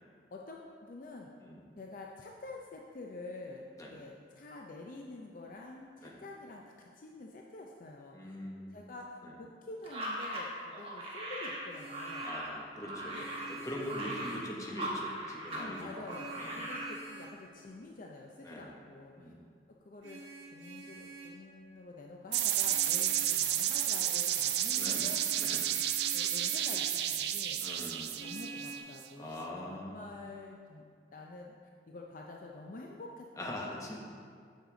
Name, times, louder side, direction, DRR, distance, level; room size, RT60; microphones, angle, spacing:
voice 1, 0.3-1.3 1.8-3.7 3.9-6.6 7.0-8.4 8.7-12.3 13.1-13.3 14.0-14.2 15.6-19.3 19.8-20.2 20.5-25.4 26.1-27.6 28.2-30.9 31.1-31.5 31.9-34.0, left 2 dB, 45° left, 0 dB, 0.5 m, -47 dB
voice 2, 8.1-8.7 12.2-15.9 16.4-16.5 18.4-18.7 19.2-19.4 24.8-25.0 25.4-25.6 27.6-28.2 29.2-29.9 33.4-34.0, left 1 dB, 20° left, -2 dB, 0.9 m, -42 dB
sound 1, 9.8-15.7 15.9-16.9, right 1 dB, 30° right, 1.2 m, -39 dB
Vehicle horn car horn honking, 11.5-12.4 13.1-14.6 15.5-17.4 20.0-21.4 22.6-23.3 24.7-26.9 28.1-28.8, right 3 dB, 80° right, 1.6 m, -48 dB
sound 2, 22.3-29.0, right 11 dB, 60° right, 0.4 m, -31 dB
8.0 x 6.5 x 3.8 m, 2.1 s
head